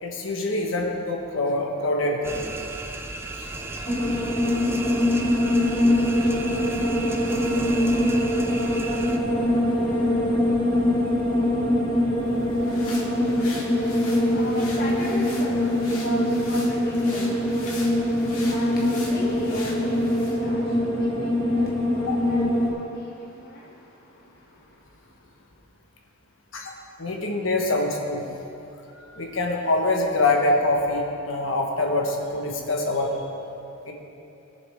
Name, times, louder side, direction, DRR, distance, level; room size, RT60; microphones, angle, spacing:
voice 1, 0.0-2.3 6.2-6.3 13.2-13.3 22.0-22.2 26.5-26.7 27.0-28.2 29.0-33.1 33.9-34.0, left 2 dB, 70° left, 1 dB, 1.4 m, -25 dB
sound 1, 2.2-9.2, right 3 dB, 10° right, 0.5 m, -35 dB
sound 2, 3.8-22.7, left 1 dB, 20° left, 1.5 m, -23 dB
sound 3, 12.2-20.4, left 2 dB, 85° left, 2.6 m, -41 dB
voice 2, 12.7-23.7, left 1 dB, 45° left, -3 dB, 0.9 m, -37 dB
20.0 x 7.1 x 3.6 m, 2.9 s
head